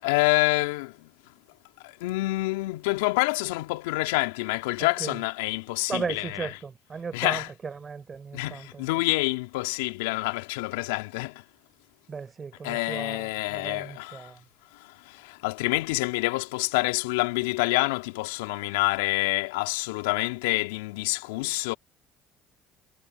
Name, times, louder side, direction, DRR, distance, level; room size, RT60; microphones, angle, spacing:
voice 1, 0.0-1.1 1.8-6.5 7.1-7.5 8.3-11.4 12.6-14.3 14.7-21.7, left 23 dB, 80° left, 3.1 m, -27 dB
voice 2, 4.8-5.2 5.9-9.0 12.1-14.4, right 5 dB, 35° right, 5.3 m, -36 dB
hypercardioid pair, 60°, 0 cm